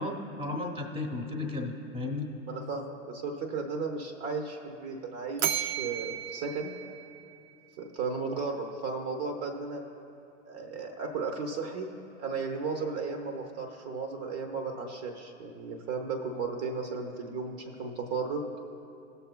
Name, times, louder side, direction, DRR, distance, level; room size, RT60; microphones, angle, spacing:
voice 1, 0.0-2.3, left 2 dB, 15° right, 2 dB, 1.0 m, -34 dB
voice 2, 2.5-6.8 7.8-9.8 10.4-11.9 12.2-18.4, right 4 dB, 40° right, 3 dB, 0.9 m, -35 dB
Bell, 5.4-7.7, right 11 dB, 85° right, 0.5 m, -34 dB
19.0 x 6.8 x 2.2 m, 2.7 s
hypercardioid pair, 115°, 39 cm